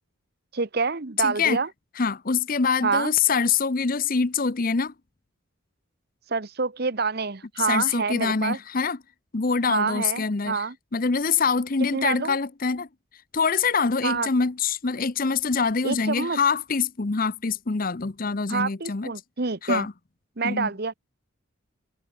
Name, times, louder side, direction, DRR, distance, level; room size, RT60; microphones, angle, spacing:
voice 1, 0.5-1.7 2.8-3.1 6.3-8.6 9.7-10.7 11.9-12.4 14.0-14.3 15.8-16.4 18.5-19.9 20.4-21.0, right 4 dB, 50° right, 1.1 m, -27 dB
voice 2, 1.2-1.6 2.0-4.9 7.7-9.0 9.3-10.6 10.9-12.9 13.3-19.1 19.6-19.9 20.4-20.7, left 5 dB, 40° left, 0.7 m, -24 dB
open air
head